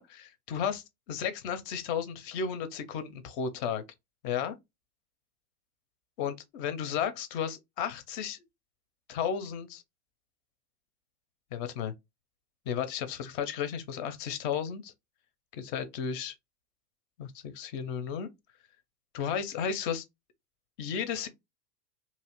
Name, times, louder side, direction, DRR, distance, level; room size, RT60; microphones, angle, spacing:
voice 1, 0.0-3.8 4.2-4.6 6.2-8.4 9.1-9.8 11.5-11.9 12.7-14.9 15.5-16.3 17.2-18.3 19.1-20.0 20.8-21.3, left 7 dB, 35° left, 0.5 m, -33 dB
2.8 x 2.4 x 2.9 m
hypercardioid pair, 100°, 49 cm